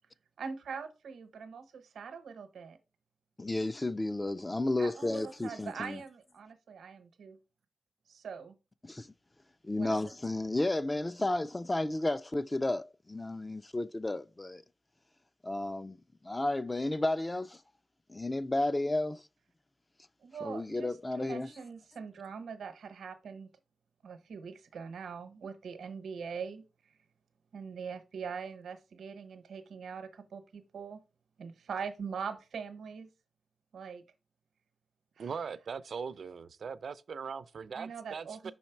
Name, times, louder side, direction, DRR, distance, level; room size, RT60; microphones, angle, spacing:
voice 1, 0.4-2.8 4.8-7.4 8.1-8.5 9.7-10.0 20.2-23.5 24.0-26.6 27.5-31.0 31.4-33.1 33.7-34.0 35.2-35.3 37.7-38.5, right 6 dB, 90° right, 0.9 m, -42 dB
voice 2, 3.4-6.0 8.8-9.1 9.6-14.6 15.4-16.0 16.2-17.6 18.1-19.2 20.4-21.5, left 2 dB, 20° left, 0.3 m, -32 dB
voice 3, 35.2-38.5, right 6 dB, 70° right, 0.5 m, -40 dB
5.6 x 4.2 x 4.5 m
wide cardioid pair, 90°, 0 cm